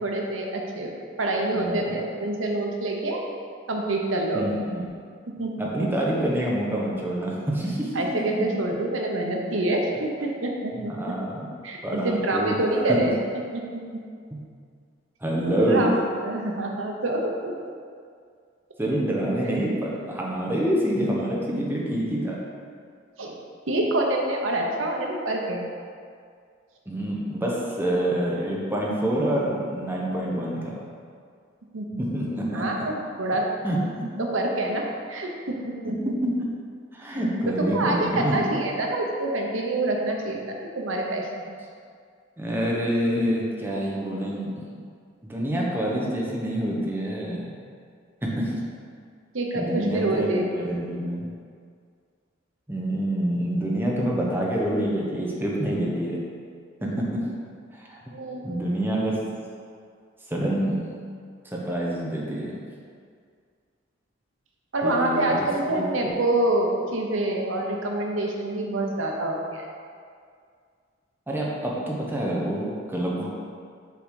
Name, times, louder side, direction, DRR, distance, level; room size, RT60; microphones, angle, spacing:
voice 1, 0.0-3.2 3.7-4.7 5.4-5.5 5.8-5.9 7.9-11.1 11.6-13.2 13.5-14.0 15.7-15.9 16.2-17.5 23.2-23.3 23.7-25.6 31.7-32.0 32.5-33.5 34.3-36.1 37.1-37.3 37.6-41.5 49.3-50.5 56.8-57.1 58.1-58.5 64.7-69.6, right 2 dB, 85° right, 0 dB, 1.0 m, -26 dB
voice 2, 1.5-1.9 4.3-4.9 5.6-7.9 8.4-8.5 10.7-11.5 11.8-12.5 12.9-13.0 15.2-15.9 18.8-22.4 26.9-30.8 32.1-32.6 33.6-34.1 35.9-36.3 36.9-38.4 42.4-44.7 45.3-47.5 48.2-48.5 49.5-51.2 52.7-56.2 56.8-57.2 57.7-58.0 58.4-59.2 60.3-60.9 61.4-62.5 64.8-66.1 71.3-73.3, right 1 dB, 10° right, -4 dB, 1.0 m, -27 dB
6.9 x 4.0 x 4.8 m, 2.2 s
head